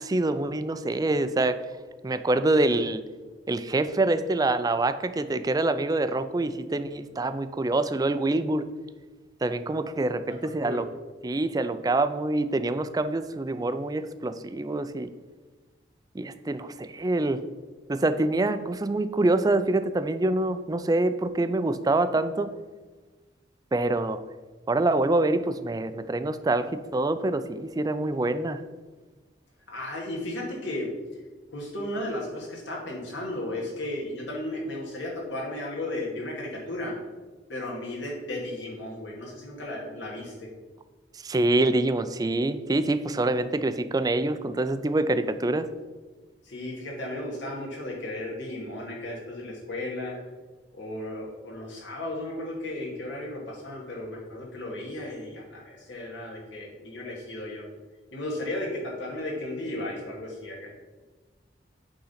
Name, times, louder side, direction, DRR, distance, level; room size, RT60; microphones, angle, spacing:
voice 1, 0.0-1.6 2.0-3.0 3.5-8.7 9.4-10.9 11.2-15.1 16.1-17.4 17.9-22.5 23.7-24.2 24.7-28.6 41.2-45.7, right 2 dB, 20° right, 11 dB, 0.4 m, -25 dB
voice 2, 10.3-10.8 29.7-30.9 31.5-37.0 37.5-40.5 46.4-50.1 50.8-57.6 58.1-60.7, left 1 dB, 80° left, -3 dB, 2.3 m, -35 dB
8.7 x 3.8 x 5.7 m, 1.3 s
head